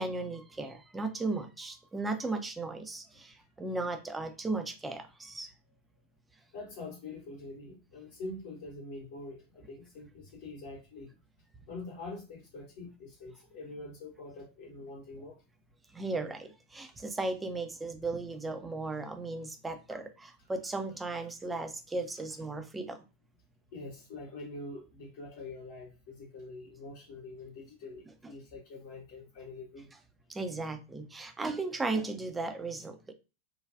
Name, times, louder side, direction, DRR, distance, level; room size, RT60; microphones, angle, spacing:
voice 1, 0.0-5.5 15.9-23.0 28.2-28.3 30.3-33.0, right 3 dB, 10° right, 6 dB, 0.5 m, -36 dB
voice 2, 6.5-11.1 11.7-15.4 23.7-29.9, left 2 dB, 50° left, -3 dB, 0.9 m, -45 dB
3.3 x 2.2 x 2.4 m, 0.29 s
figure-of-eight pair, 90°, 0 cm